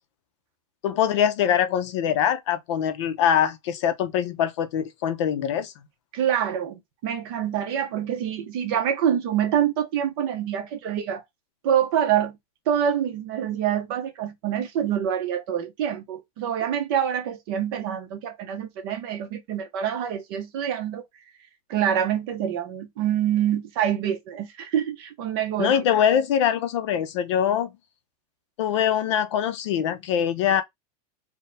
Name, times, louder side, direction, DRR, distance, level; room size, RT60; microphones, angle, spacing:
voice 1, 0.8-5.7 25.6-27.7 28.6-30.6, left 9 dB, 50° left, 0.6 m, -23 dB
voice 2, 6.1-11.2 11.6-12.4 12.7-21.0 21.7-25.8, right 9 dB, 40° right, 0.9 m, -26 dB
4.4 x 2.2 x 3.4 m
supercardioid pair, 180°, 20 cm